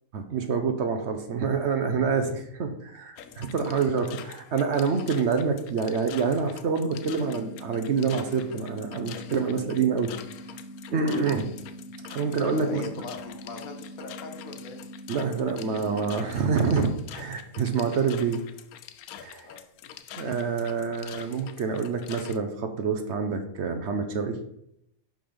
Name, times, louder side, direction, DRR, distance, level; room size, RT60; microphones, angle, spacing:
voice 1, 0.1-10.1 10.9-11.5 12.1-12.8 15.1-18.4 19.2-19.5 20.2-24.4, right 5 dB, 60° right, 7 dB, 0.9 m, -27 dB
sound 1, 3.2-22.4, left 10 dB, 90° left, 1.1 m, -46 dB
voice 2, 3.2-3.7 12.5-14.8 19.4-19.6, left 4 dB, 75° left, 5 dB, 1.4 m, -40 dB
sound 2, 6.9-16.9, equal, 10° right, 0.7 m, -44 dB
5.8 x 5.3 x 5.1 m, 0.76 s
omnidirectional pair, 1.5 m